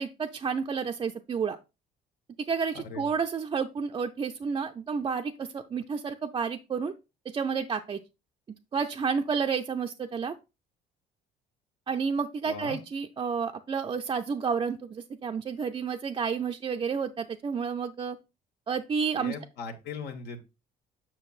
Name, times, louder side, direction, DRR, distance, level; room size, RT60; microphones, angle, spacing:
voice 1, 0.0-1.6 2.4-6.9 7.3-8.0 8.7-10.3 11.9-18.2 18.7-19.3, right 6 dB, 30° right, 4 dB, 0.4 m, -30 dB
voice 2, 12.4-12.8 19.1-20.4, left 5 dB, 75° left, 6 dB, 1.3 m, -39 dB
7.6 x 5.8 x 2.4 m, 0.27 s
cardioid pair, 110°, 17 cm